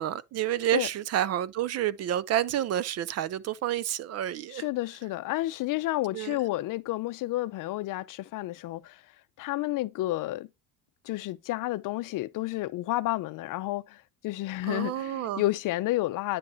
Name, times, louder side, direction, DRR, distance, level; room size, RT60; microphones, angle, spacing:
voice 1, 0.0-4.6 6.1-6.4 14.7-15.4, right 11 dB, 40° right, 0.5 m, -29 dB
voice 2, 4.5-9.0 9.4-10.5 11.0-16.4, left 17 dB, 55° left, 0.6 m, -31 dB
9.6 x 5.2 x 2.7 m
cardioid pair, 140°, 38 cm